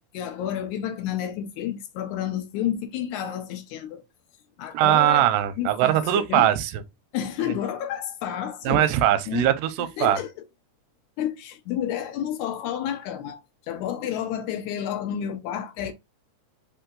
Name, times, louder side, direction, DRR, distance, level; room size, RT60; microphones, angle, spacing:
voice 1, 0.0-4.0 4.6-5.3 5.6-6.5 7.1-8.9 9.3-9.5 10.0-10.5 11.2-15.9, left 10 dB, 80° left, 1.9 m, -30 dB
voice 2, 4.7-6.8 8.7-10.2, right 12 dB, 90° right, 2.2 m, -21 dB
5.2 x 2.7 x 3.7 m
omnidirectional pair, 3.6 m